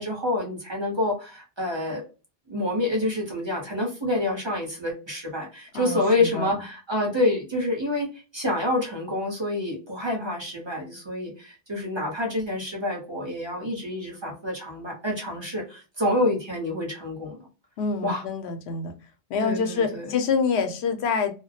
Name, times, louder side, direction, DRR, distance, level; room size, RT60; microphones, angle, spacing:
voice 1, 0.0-2.0 2.5-8.1 8.3-17.4 18.0-18.2 19.4-20.0, left 1 dB, 30° right, -1 dB, 0.8 m, -27 dB
voice 2, 5.7-6.6 17.8-18.9 19.3-21.3, left 5 dB, 90° left, 6 dB, 0.9 m, -26 dB
2.3 x 2.0 x 2.7 m, 0.31 s
omnidirectional pair, 1.1 m